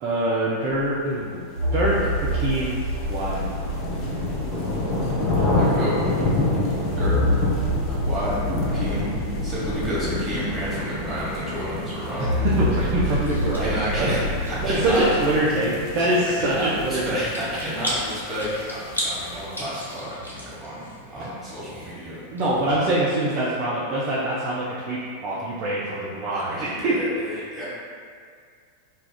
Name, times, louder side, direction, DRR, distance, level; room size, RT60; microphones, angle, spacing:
voice 1, 0.0-1.4 1.7-2.8 3.1-3.4 12.2-14.1 14.6-17.3 21.2-21.4 22.3-27.0 27.3-27.4, right 1 dB, 40° right, -7 dB, 0.4 m, -24 dB
sound 1, 1.5-6.1 6.9-11.6 12.2-15.3, left 1 dB, 85° left, 0.8 m, -28 dB
sound 2, 2.0-19.6, left 2 dB, 30° left, 0.6 m, -29 dB
voice 2, 5.5-6.1 7.0-7.1 7.9-8.4 8.7-9.1 9.4-12.3 13.6-15.1 16.4-20.8 21.1-22.2 26.3-27.7, equal, 15° right, -9 dB, 1.1 m, -30 dB
Chewing mastication, 12.5-22.8, equal, 90° right, 0.6 m, -37 dB
2.4 x 2.3 x 3.3 m, 2.1 s
figure-of-eight pair, 90°, 0 cm